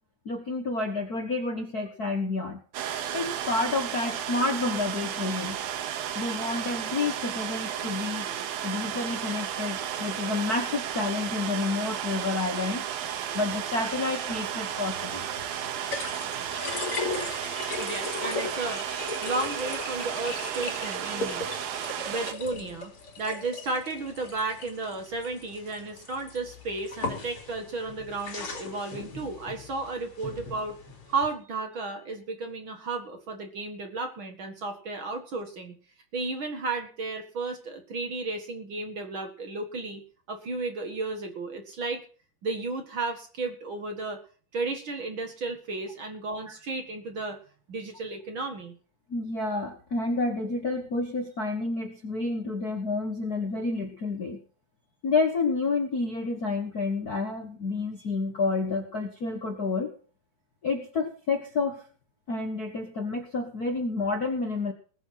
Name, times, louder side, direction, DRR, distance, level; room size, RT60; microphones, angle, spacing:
voice 1, 0.2-2.6 3.1-5.6 6.1-8.3 8.6-12.8 13.3-15.3 46.5-46.6 49.1-54.4 55.0-59.9 60.6-61.8 62.3-64.7, left 3 dB, 90° left, 4 dB, 0.8 m, -29 dB
sound 1, 2.7-22.3, right 9 dB, 80° right, 2.9 m, -33 dB
sound 2, 14.3-31.3, left 3 dB, 40° left, 3.4 m, -38 dB
voice 2, 17.8-21.4 22.1-22.9 23.2-30.7 31.1-35.8 36.1-40.0 40.3-42.0 42.4-44.2 44.5-47.4 47.7-48.8, right 3 dB, 45° right, 5 dB, 1.8 m, -33 dB
20.0 x 7.1 x 5.8 m, 0.41 s
omnidirectional pair, 4.2 m